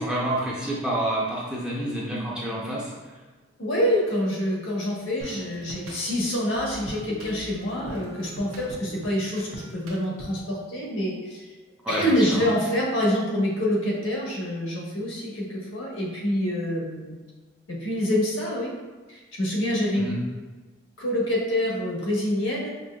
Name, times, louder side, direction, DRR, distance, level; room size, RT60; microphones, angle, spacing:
voice 1, 0.0-3.1 11.8-12.5 20.0-20.2, right 1 dB, 5° right, -6 dB, 0.5 m, -28 dB
voice 2, 3.6-11.5 11.9-17.1 17.7-18.7 19.1-20.1 21.0-22.7, equal, 80° left, -4 dB, 1.1 m, -26 dB
sound 1, 5.2-10.5, equal, 85° right, 0.8 m, -42 dB
5.2 x 2.7 x 2.3 m, 1.3 s
head